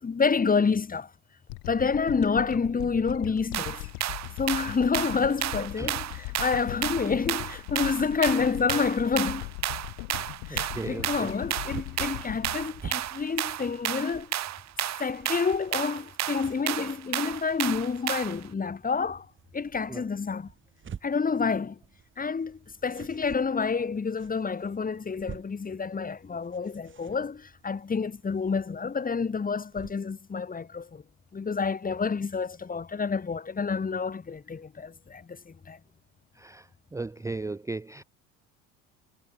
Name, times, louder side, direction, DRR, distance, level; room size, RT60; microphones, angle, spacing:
voice 1, 0.0-1.1 1.7-3.9 4.4-9.5 10.5-14.3 15.0-19.3 19.5-20.5 21.0-21.8 22.2-31.0 31.3-35.8, left 5 dB, 25° left, 4.3 m, -28 dB
sound 1, 1.5-14.0, left 39 dB, 75° left, 2.8 m, -40 dB
sound 2, 3.5-18.5, right 13 dB, 50° right, 3.0 m, -32 dB
voice 2, 10.5-11.3 19.9-20.0 36.4-36.6 36.9-38.0, right 3 dB, 10° right, 0.8 m, -36 dB
sound 3, 11.1-29.9, right 7 dB, 35° right, 6.8 m, -49 dB
supercardioid pair, 90°, 34 cm